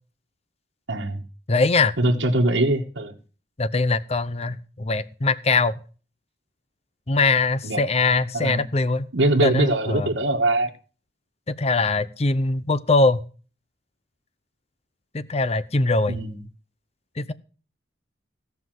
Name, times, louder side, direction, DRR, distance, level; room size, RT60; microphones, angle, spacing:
voice 1, 0.9-1.2 2.0-3.1 7.6-7.8 8.3-8.7 9.1-10.7 16.1-16.4, right 1 dB, 75° right, -1 dB, 1.6 m, -22 dB
voice 2, 1.5-1.9 3.6-5.8 7.1-9.1 9.4-10.1 11.5-13.2 15.1-16.2 17.2-17.3, left 3 dB, 35° left, 16 dB, 0.7 m, -22 dB
16.5 x 5.8 x 7.6 m, 0.38 s
head